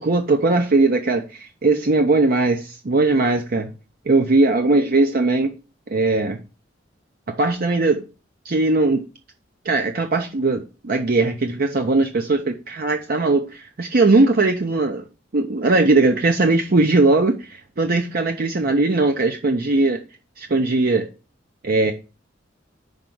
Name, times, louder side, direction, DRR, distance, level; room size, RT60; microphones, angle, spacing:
voice 1, 0.0-3.7 4.1-5.5 5.9-6.4 7.3-8.0 8.4-9.1 9.6-15.0 15.3-20.0 20.4-21.1 21.6-21.9, right 3 dB, 55° right, 0.7 m, -19 dB
5.1 x 5.1 x 5.9 m
head